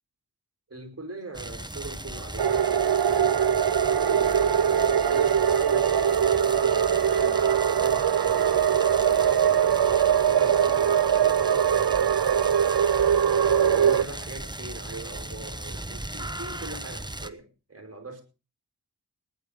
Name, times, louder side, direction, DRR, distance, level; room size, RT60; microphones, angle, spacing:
voice 1, 0.7-3.4 3.9-9.9 10.2-12.2 13.3-18.2, right 2 dB, 35° right, 5.1 m, -42 dB
sound 1, 1.3-17.3, right 1 dB, 10° right, 1.0 m, -38 dB
sound 2, 2.4-14.0, right 8 dB, 75° right, 0.6 m, -22 dB
19.0 x 10.5 x 5.3 m
wide cardioid pair, 65°, 40 cm